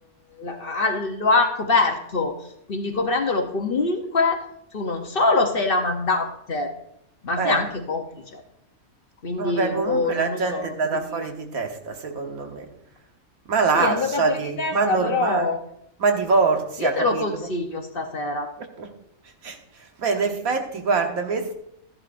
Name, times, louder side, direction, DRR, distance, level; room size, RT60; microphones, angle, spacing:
voice 1, 0.4-2.3 2.7-4.4 4.7-6.7 7.2-8.0 8.3-8.4 9.2-11.2 13.7-15.6 16.8-18.5, left 3 dB, 45° left, 4 dB, 1.0 m, -24 dB
voice 2, 9.4-12.7 13.5-15.5 16.0-17.3 18.8-18.9 19.4-19.6 20.0-21.5, right 4 dB, 85° right, 4 dB, 1.6 m, -24 dB
13.5 x 11.0 x 2.5 m, 0.75 s
omnidirectional pair, 1.5 m